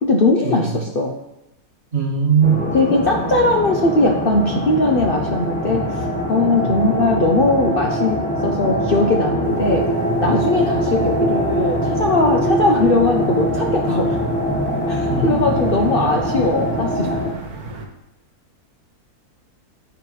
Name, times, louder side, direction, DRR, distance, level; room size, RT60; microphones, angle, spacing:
voice 1, 0.0-1.1 2.7-9.9 10.2-14.2 14.9-17.3, left 2 dB, 50° left, 1 dB, 0.7 m, -19 dB
voice 2, 1.9-2.6 6.6-6.9 15.1-15.6, right 5 dB, 45° right, 0 dB, 1.3 m, -20 dB
sound 1, 2.4-17.3, equal, 5° left, 1.2 m, -23 dB
sound 2, 9.4-17.9, right 3 dB, 75° right, 1.6 m, -31 dB
9.9 x 4.7 x 4.9 m, 0.91 s
omnidirectional pair, 1.7 m